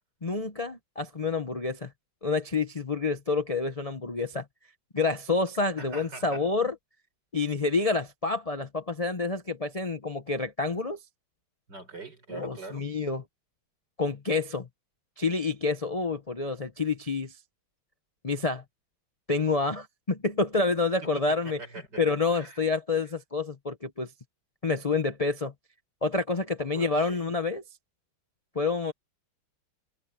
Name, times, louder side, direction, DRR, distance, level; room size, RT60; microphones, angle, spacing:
voice 1, 0.2-1.9 2.2-4.4 4.9-6.7 7.3-11.0 12.3-13.2 14.0-14.7 15.2-17.3 18.2-18.6 19.3-21.6 22.0-24.1 24.6-25.5 26.0-27.6 28.5-28.9, left 3 dB, 55° left, 0.4 m, -28 dB
voice 2, 5.8-6.4 11.7-12.8 21.3-22.0 22.3-22.6 26.6-27.2, right 3 dB, 50° right, 6.4 m, -43 dB
omnidirectional pair, 2.3 m